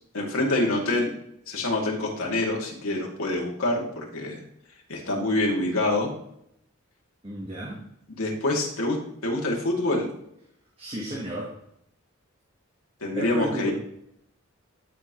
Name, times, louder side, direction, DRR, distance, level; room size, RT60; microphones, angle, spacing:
voice 1, 0.1-1.1 1.5-4.4 4.9-6.1 8.2-9.0 9.2-10.1 13.0-13.7, left 2 dB, 80° left, -1 dB, 2.2 m, -26 dB
voice 2, 7.2-7.8 10.8-11.5 13.0-13.7, equal, 25° right, -3 dB, 1.3 m, -33 dB
11.5 x 5.4 x 3.0 m, 0.74 s
head